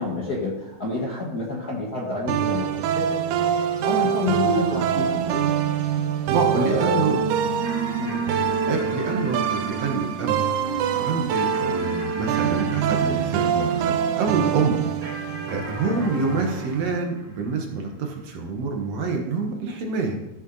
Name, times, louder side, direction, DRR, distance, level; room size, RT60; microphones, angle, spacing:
voice 1, 0.0-3.2 3.8-5.5 6.5-7.2 8.0-8.2 8.7-8.8 15.9-16.1, left 2 dB, 40° left, -3 dB, 1.5 m, -28 dB
sound 1, 2.3-17.0, right 8 dB, 85° right, 2.1 m, -25 dB
voice 2, 6.3-7.2 8.7-10.4 11.0-14.8 15.1-20.2, right 4 dB, 65° right, 2 dB, 2.2 m, -27 dB
sound 2, 7.6-14.3 15.0-17.8, equal, 25° right, 3.4 m, -39 dB
14.0 x 6.5 x 4.0 m, 0.94 s
omnidirectional pair, 3.5 m